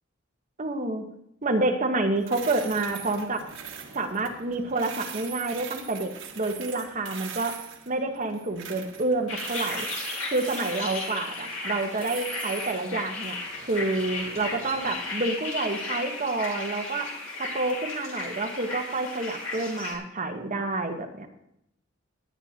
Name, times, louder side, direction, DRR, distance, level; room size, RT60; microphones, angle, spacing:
voice 1, 0.6-1.0 1.4-3.4 3.9-6.1 6.3-7.6 7.9-9.9 10.3-13.4 13.6-17.1 17.4-21.3, right 2 dB, 40° right, 4 dB, 1.2 m, -28 dB
sound 1, 2.2-15.0, right 8 dB, 80° right, 1.4 m, -42 dB
sound 2, 9.3-20.0, left 3 dB, 85° left, 2.5 m, -35 dB
17.5 x 9.9 x 2.9 m, 0.78 s
head